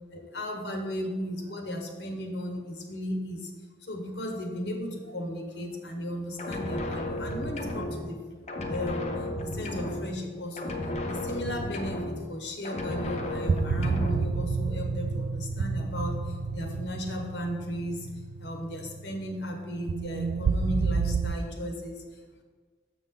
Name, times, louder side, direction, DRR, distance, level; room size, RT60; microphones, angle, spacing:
voice 1, 0.1-3.5 3.8-9.1 9.4-10.7 11.1-18.1 18.4-22.0, equal, 75° left, 3 dB, 1.2 m, -35 dB
sound 1, 6.4-8.2 8.5-10.3 10.6-12.4 12.6-14.3, left 1 dB, 40° left, 0.6 m, -33 dB
sound 2, 12.9-21.3, right 4 dB, 75° right, 0.3 m, -30 dB
6.5 x 6.1 x 3.7 m, 1.5 s
head